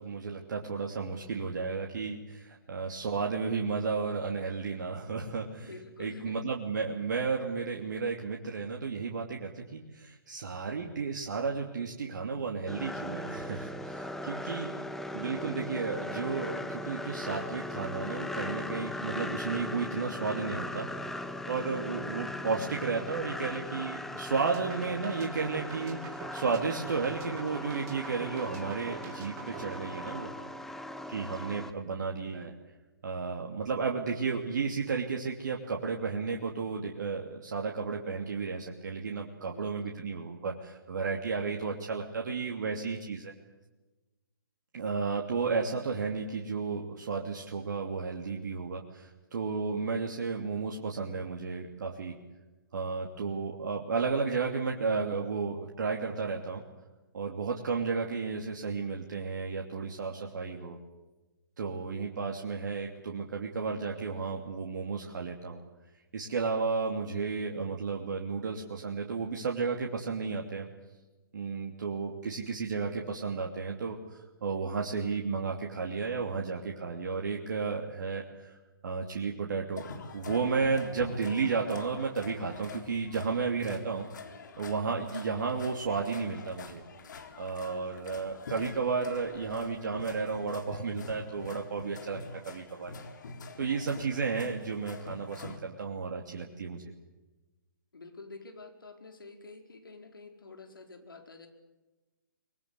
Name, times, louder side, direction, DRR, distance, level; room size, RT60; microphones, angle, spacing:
voice 1, 0.0-5.7 6.0-14.7 15.1-20.9 21.4-30.3 31.1-32.5 33.0-43.3 44.7-52.1 52.7-56.6 57.1-60.8 61.6-65.6 66.1-70.7 71.3-78.6 78.8-84.1 84.6-86.8 87.4-92.2 92.4-92.9 93.6-96.9, right 5 dB, 55° right, 1 dB, 2.9 m, -33 dB
voice 2, 5.6-6.4 39.5-40.1 83.2-83.8 97.9-101.5, left 3 dB, 75° left, 5 dB, 5.0 m, -48 dB
sound 1, 12.7-31.7, left 1 dB, 5° left, 1.1 m, -39 dB
sound 2, 24.4-30.6, right 8 dB, 25° right, 2.6 m, -47 dB
sound 3, 79.8-95.6, left 4 dB, 55° left, 3.9 m, -45 dB
25.5 x 21.5 x 8.3 m, 1.1 s
figure-of-eight pair, 135°, 12 cm